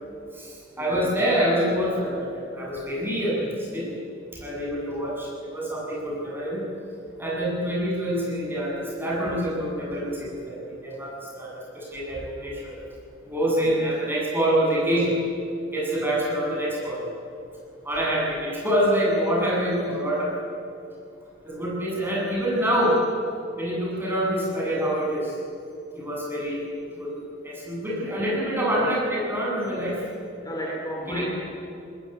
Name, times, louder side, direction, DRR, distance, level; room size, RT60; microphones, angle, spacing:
voice 1, 0.3-3.9 4.3-6.6 7.2-12.8 13.2-15.1 15.7-17.0 17.8-20.6 21.4-23.0 23.6-25.4 25.9-26.7 26.9-27.1 27.4-30.0 31.1-31.2, equal, 10° right, -4 dB, 7.8 m, -26 dB
voice 2, 30.4-31.2, equal, 20° left, -3 dB, 3.8 m, -34 dB
21.5 x 19.5 x 9.4 m, 2.6 s
head